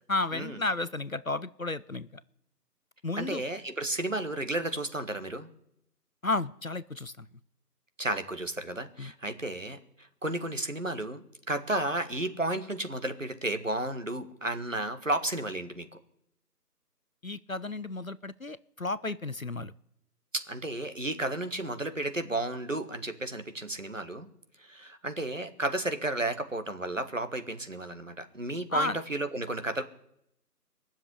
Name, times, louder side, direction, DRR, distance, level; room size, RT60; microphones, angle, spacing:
voice 1, 0.1-2.2 3.0-3.4 6.2-7.3 9.0-9.1 17.2-19.7 28.7-29.0, left 2 dB, 55° left, 17 dB, 0.5 m, -32 dB
voice 2, 3.2-5.5 8.0-16.0 20.3-24.3 24.6-29.8, right 1 dB, 50° right, 9 dB, 1.4 m, -33 dB
20.0 x 7.3 x 9.7 m, 0.75 s
figure-of-eight pair, 170°, 49 cm